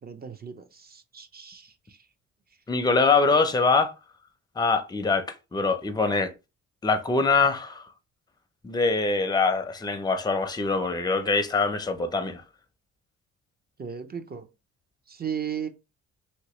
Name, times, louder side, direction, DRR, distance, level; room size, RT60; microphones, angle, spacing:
voice 1, 0.0-2.0 13.8-14.5 15.1-15.7, right 8 dB, 30° right, 0.6 m, -36 dB
voice 2, 2.7-3.9 4.6-6.3 6.8-7.8 8.6-12.4, left 4 dB, 15° left, 0.5 m, -23 dB
3.2 x 2.9 x 3.0 m
cardioid pair, 90°, 30 cm